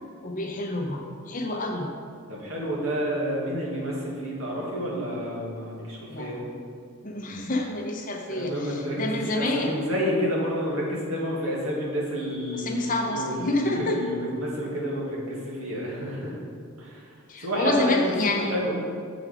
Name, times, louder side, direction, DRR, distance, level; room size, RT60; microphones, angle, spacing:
voice 1, 0.2-1.9 6.1-6.6 7.0-9.8 12.6-14.0 17.3-18.5, left 2 dB, 35° left, 1 dB, 0.8 m, -28 dB
voice 2, 2.3-6.4 8.3-16.4 16.8-17.1 17.4-18.0 18.4-18.7, equal, 75° right, -4 dB, 1.8 m, -30 dB
8.0 x 4.9 x 4.9 m, 2.3 s
head